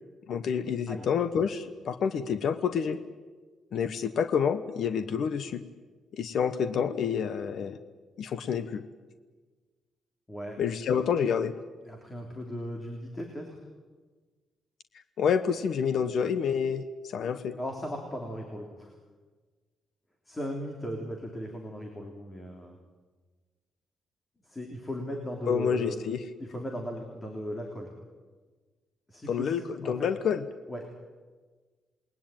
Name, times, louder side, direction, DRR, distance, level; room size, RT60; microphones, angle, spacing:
voice 1, 0.3-3.0 3.7-5.6 6.2-7.8 8.2-8.8 10.6-11.5 15.2-17.6 25.5-26.2 29.3-29.6 29.8-30.4, left 7 dB, 55° left, 10 dB, 1.2 m, -28 dB
voice 2, 10.3-10.6 11.8-13.6 17.6-18.9 20.3-22.8 24.4-26.0 26.4-27.9 29.1-30.1 30.7-30.9, equal, 15° left, 1 dB, 3.3 m, -37 dB
28.5 x 21.0 x 9.1 m, 1.4 s
wide cardioid pair, 180°, 0 cm